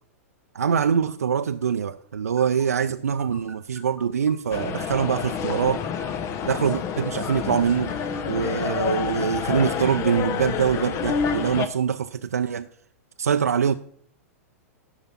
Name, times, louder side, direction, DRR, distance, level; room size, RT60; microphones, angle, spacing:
voice 1, 0.5-5.8 6.4-7.9 8.3-12.7 13.2-13.7, right 7 dB, 90° right, 0.4 m, -24 dB
sound 1, 2.4-11.9, right 1 dB, 10° left, 1.9 m, -50 dB
sound 2, 4.5-11.7, left 7 dB, 35° left, 0.9 m, -28 dB
12.0 x 5.8 x 5.8 m
hypercardioid pair, 110°, 8 cm